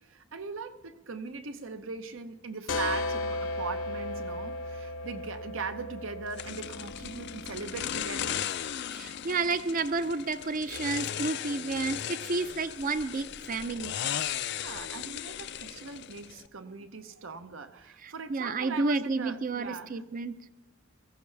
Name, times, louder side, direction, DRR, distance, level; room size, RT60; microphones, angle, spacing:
voice 1, 0.0-8.5 14.5-20.0, right 4 dB, 80° right, 0.8 m, -40 dB
sound 1, 2.7-8.1, left 2 dB, 75° left, 1.0 m, -36 dB
sound 2, 6.4-16.5, left 10 dB, 55° left, 0.4 m, -37 dB
voice 2, 8.9-13.9 18.0-20.4, right 3 dB, 45° right, 0.5 m, -31 dB
22.0 x 15.0 x 3.3 m
head